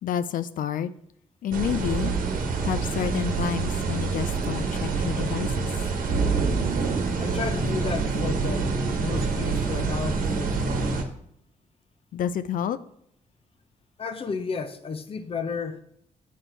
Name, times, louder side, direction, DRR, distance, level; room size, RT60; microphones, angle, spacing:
voice 1, 0.0-0.9 1.4-2.1 2.6-5.7 12.1-12.8, left 9 dB, 75° left, 0.4 m, -29 dB
sound 1, 1.5-11.0, right 4 dB, 75° right, 1.1 m, -26 dB
voice 2, 7.2-10.9 14.0-15.8, left 5 dB, 40° left, 0.7 m, -32 dB
8.2 x 4.3 x 4.5 m
cardioid pair, 100°, 14 cm